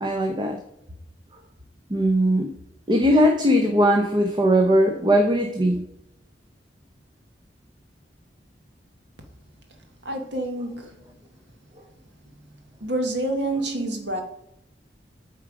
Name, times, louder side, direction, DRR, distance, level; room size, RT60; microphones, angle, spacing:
voice 1, 0.0-0.6 1.9-2.5 2.9-5.8, equal, 25° right, 0.8 m, -19 dB
voice 2, 10.0-11.0 12.8-14.2, right 1 dB, 80° right, 1.5 m, -27 dB
8.5 x 4.5 x 5.0 m
head